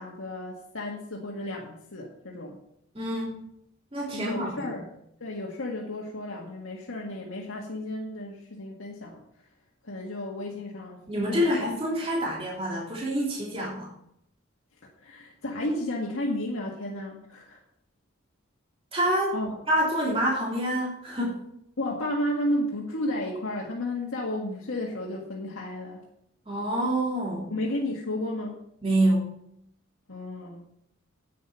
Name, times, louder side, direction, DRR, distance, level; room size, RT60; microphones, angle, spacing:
voice 1, 0.0-2.6 4.1-9.2 9.8-11.0 11.3-11.6 15.0-17.6 19.3-19.5 21.8-26.0 27.5-28.6 30.1-30.6, left 1 dB, 90° left, -2 dB, 1.8 m, -33 dB
voice 2, 2.9-3.4 3.9-4.7 11.1-13.9 18.9-19.4 19.7-21.4 26.5-27.5 28.8-29.3, right 1 dB, 30° right, -4 dB, 3.1 m, -27 dB
10.0 x 8.5 x 5.7 m, 0.74 s
head